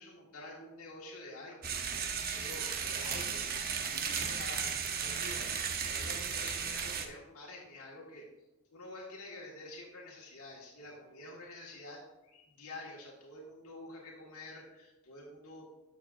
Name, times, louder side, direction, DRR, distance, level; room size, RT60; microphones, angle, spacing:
voice 1, 0.0-5.5 5.8-8.2 8.7-15.7, left 2 dB, 75° left, -3 dB, 1.7 m, -48 dB
sound 1, 1.6-7.1, right 6 dB, 40° right, 0.7 m, -35 dB
12.5 x 6.6 x 2.5 m, 1.0 s
head